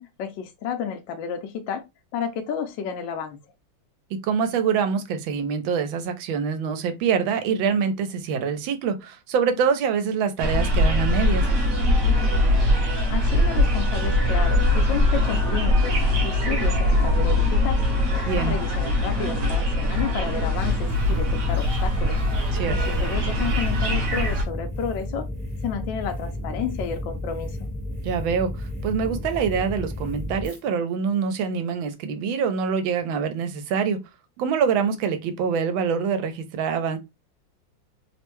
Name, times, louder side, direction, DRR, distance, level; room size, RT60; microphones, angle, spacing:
voice 1, 0.0-1.8 2.1-3.4 13.1-15.9 16.2-17.8 18.4-22.2 23.0-25.3 25.6-27.6, left 7 dB, 75° left, 1.2 m, -31 dB
voice 2, 4.1-11.5 18.2-18.6 22.5-23.0 28.0-34.0 34.4-37.0, right 6 dB, 85° right, 1.4 m, -25 dB
sound 1, 10.4-24.4, left 1 dB, 55° right, 1.1 m, -22 dB
sound 2, 20.5-30.6, left 1 dB, ahead, 0.7 m, -33 dB
3.4 x 2.1 x 3.0 m
omnidirectional pair, 2.2 m